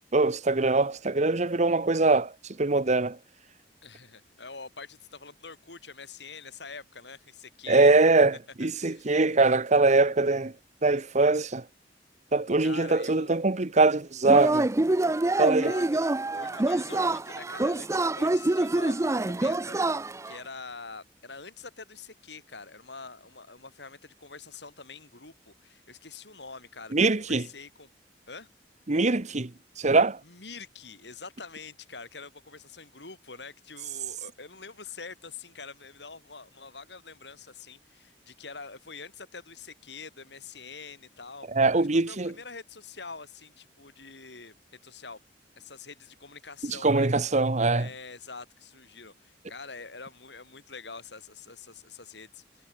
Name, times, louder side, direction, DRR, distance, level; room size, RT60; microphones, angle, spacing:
voice 1, 0.1-2.3 2.6-3.2 7.7-10.5 10.8-11.6 12.3-14.7 15.4-15.7 26.9-27.5 28.9-29.5 29.8-30.2 41.5-42.3 46.6-47.9, right 3 dB, 40° right, 1.1 m, -22 dB
voice 2, 3.8-7.9 8.6-9.1 12.6-13.3 15.4-19.8 20.2-27.9 28.3-28.5 30.2-41.5 41.8-44.5 44.8-45.2 45.6-47.1 47.7-52.7, left 4 dB, 70° left, 5.9 m, -45 dB
Yell / Cheering, 14.2-20.4, right 2 dB, 15° right, 0.5 m, -26 dB
head